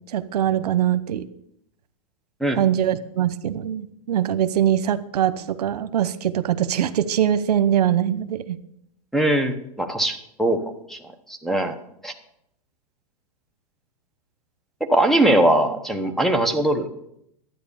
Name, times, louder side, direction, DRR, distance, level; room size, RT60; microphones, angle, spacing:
voice 1, 0.1-1.2 2.5-8.6, right 10 dB, 85° right, 14 dB, 0.9 m, -22 dB
voice 2, 9.1-11.0 11.3-11.8 12.0-12.1 14.9-16.9, right 1 dB, ahead, 7 dB, 1.0 m, -21 dB
12.5 x 9.3 x 7.0 m, 0.75 s
supercardioid pair, 150°, 20 cm